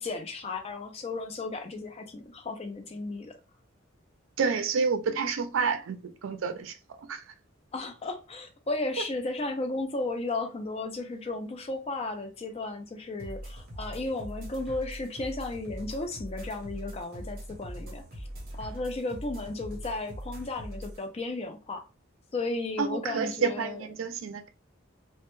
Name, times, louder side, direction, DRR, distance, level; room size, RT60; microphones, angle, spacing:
voice 1, 0.0-3.3 7.7-18.3 18.5-21.8 22.3-23.8, left 2 dB, 30° left, 0.4 m, -34 dB
voice 2, 4.4-7.2 22.8-24.5, right 5 dB, 80° right, 0.4 m, -29 dB
sound 1, 13.2-21.0, equal, 50° right, 0.8 m, -41 dB
2.1 x 2.0 x 2.9 m
head